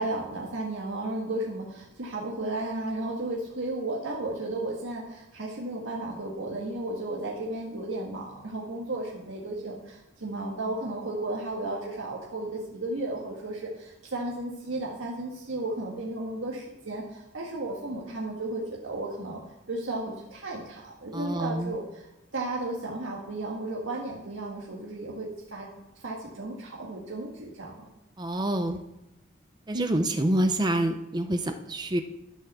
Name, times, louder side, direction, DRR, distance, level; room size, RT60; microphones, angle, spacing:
voice 1, 0.0-19.4 19.7-25.7 26.0-27.9 29.7-30.0, right 2 dB, 85° right, -3 dB, 1.7 m, -34 dB
voice 2, 21.1-21.7 28.2-28.8 29.7-32.0, right 1 dB, 20° right, 7 dB, 0.5 m, -27 dB
12.0 x 5.8 x 6.8 m, 0.92 s
head